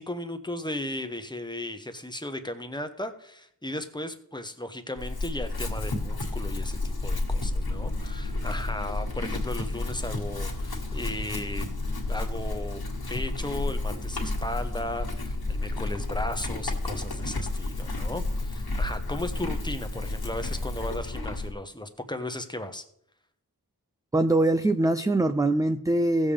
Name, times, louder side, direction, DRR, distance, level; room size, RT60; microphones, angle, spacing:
voice 1, 0.0-11.7 12.1-12.8 13.1-22.8, left 1 dB, 10° left, 8 dB, 1.0 m, -36 dB
Chewing mastication / Livestock farm animals working animals, 5.0-21.5, left 2 dB, 65° left, 1.8 m, -31 dB
voice 2, 24.1-26.3, right 2 dB, 10° right, 9 dB, 0.4 m, -23 dB
16.0 x 7.2 x 3.4 m, 0.70 s
wide cardioid pair, 50°, 39 cm